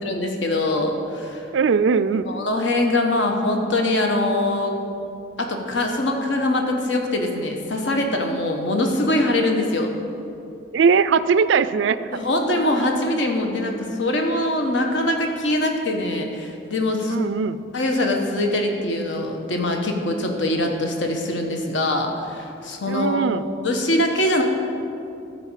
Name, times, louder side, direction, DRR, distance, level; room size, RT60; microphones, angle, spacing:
voice 1, 0.0-1.5 2.3-4.7 5.4-9.9 12.1-17.2 17.7-24.4, left 1 dB, 75° left, 2 dB, 1.2 m, -23 dB
voice 2, 1.5-2.3 8.7-8.9 10.7-12.0 17.1-17.6 22.9-23.4, right 5 dB, 70° right, 14 dB, 0.4 m, -19 dB
12.5 x 4.9 x 7.4 m, 2.6 s
head